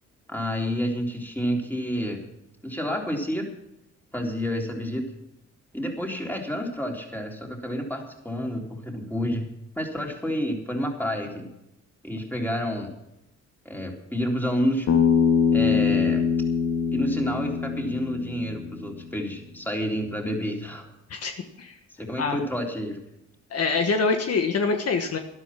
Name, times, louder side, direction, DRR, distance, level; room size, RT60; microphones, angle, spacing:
voice 1, 0.3-2.2 2.6-3.5 4.1-5.1 5.7-9.4 9.8-11.5 12.0-12.9 13.7-14.9 15.5-16.3 16.9-20.9 22.0-23.0, equal, 5° left, 1 dB, 3.7 m, -29 dB
Bass guitar, 14.9-19.1, left 6 dB, 70° left, 2.3 m, -23 dB
voice 2, 21.1-21.8 22.2-22.4 23.5-25.2, left 4 dB, 55° left, 5 dB, 1.5 m, -25 dB
13.0 x 12.0 x 5.9 m, 0.84 s
cardioid pair, 90°, 30 cm